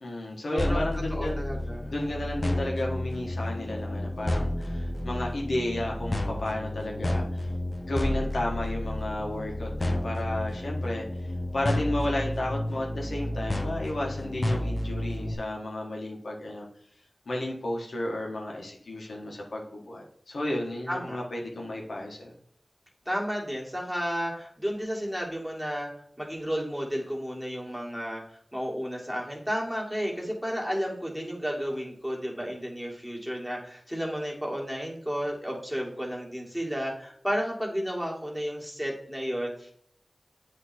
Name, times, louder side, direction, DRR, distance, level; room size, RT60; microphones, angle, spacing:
voice 1, 0.0-1.4 1.9-7.5 7.9-16.7 17.3-22.3, left 1 dB, 90° left, -1 dB, 1.3 m, -33 dB
voice 2, 0.5-1.9 20.9-21.2 23.1-25.9 26.2-39.7, equal, ahead, -2 dB, 1.9 m, -32 dB
sound 1, 0.6-15.3, left 1 dB, 35° left, 1.0 m, -31 dB
7.9 x 3.2 x 4.2 m, 0.62 s
wide cardioid pair, 50°, 0 cm